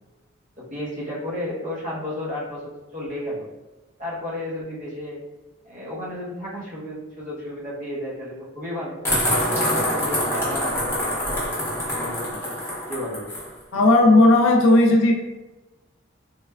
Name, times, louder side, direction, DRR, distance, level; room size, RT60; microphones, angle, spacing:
voice 1, 0.6-3.4 4.0-5.2 5.6-9.0 9.4-11.6 11.9-12.5 12.9-13.3, left 1 dB, 40° right, -6 dB, 0.8 m, -33 dB
sound 1, 9.0-13.5, left 1 dB, 15° left, 0.8 m, -25 dB
voice 2, 13.7-15.1, left 2 dB, 75° left, 1 dB, 0.3 m, -15 dB
3.1 x 2.1 x 2.2 m, 1.2 s
head